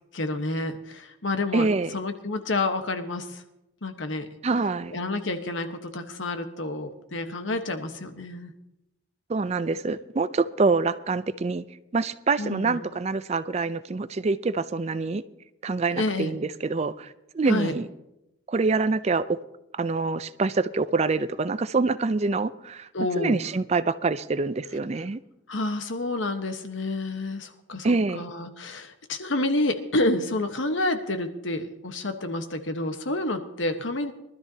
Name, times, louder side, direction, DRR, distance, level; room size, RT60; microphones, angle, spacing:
voice 1, 0.1-3.4 3.8-4.3 4.9-8.5 12.4-12.8 15.9-16.3 17.5-17.7 22.9-23.4 25.5-34.1, left 2 dB, 75° left, 7 dB, 1.2 m, -29 dB
voice 2, 1.5-1.9 4.4-5.0 9.3-11.6 11.9-15.2 15.6-17.9 18.5-19.4 19.7-22.9 23.2-25.2 27.8-28.2, right 3 dB, 35° right, 14 dB, 0.4 m, -25 dB
23.0 x 12.5 x 2.8 m, 0.91 s
head